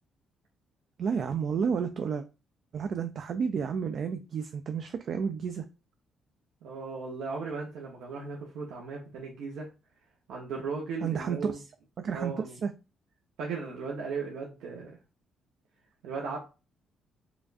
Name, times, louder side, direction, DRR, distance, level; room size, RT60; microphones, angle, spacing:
voice 1, 1.0-2.2 2.7-5.6 11.0-11.6 12.0-12.7, right 6 dB, 60° right, 7 dB, 0.3 m, -31 dB
voice 2, 6.6-9.7 10.3-11.6 12.1-12.6 13.4-15.0 16.0-16.4, right 4 dB, 90° right, -2 dB, 0.8 m, -36 dB
4.9 x 2.4 x 2.5 m, 0.30 s
cardioid pair, 90°, 0 cm